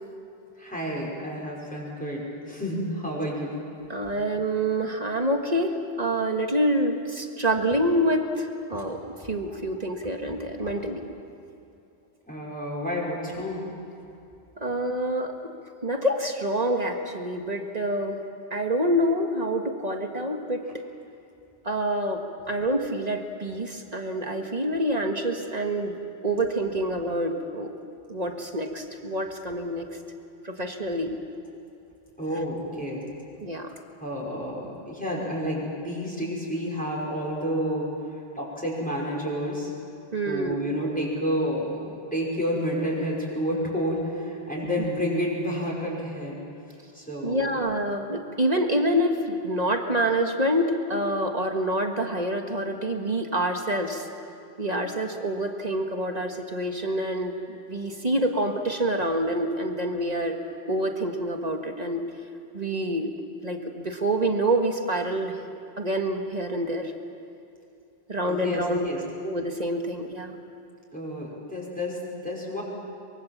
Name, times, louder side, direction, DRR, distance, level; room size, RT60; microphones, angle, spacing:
voice 1, 0.6-3.5 8.7-8.9 9.5-9.6 10.6-10.7 12.3-13.6 32.2-33.1 34.0-37.9 38.3-39.7 40.2-46.4 46.9-47.6 68.3-69.0 70.9-72.6, equal, 10° left, -4 dB, 5.6 m, -30 dB
voice 2, 3.9-9.0 9.3-11.0 14.6-15.5 15.8-18.2 18.5-20.6 21.6-26.0 26.2-27.7 28.1-29.9 30.4-31.2 33.4-33.7 40.1-40.6 47.2-54.1 54.6-60.4 60.7-62.0 62.5-63.1 63.4-65.3 65.8-66.9 68.1-68.9 69.2-70.3, right 1 dB, 40° right, 4 dB, 1.7 m, -27 dB
24.0 x 23.0 x 7.4 m, 2.6 s
omnidirectional pair, 1.1 m